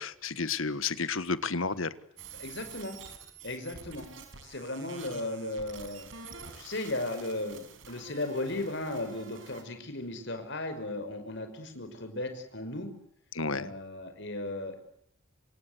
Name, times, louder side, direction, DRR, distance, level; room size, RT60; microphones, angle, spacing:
voice 1, 0.0-1.9 13.3-13.7, left 4 dB, 80° left, 14 dB, 1.6 m, -31 dB
sound 1, 2.2-9.6, right 5 dB, 70° right, 6.1 m, -48 dB
voice 2, 2.4-3.0 3.4-4.1 4.4-12.9 13.5-14.8, left 2 dB, 60° left, 7 dB, 5.6 m, -36 dB
28.0 x 26.0 x 8.2 m, 0.69 s
head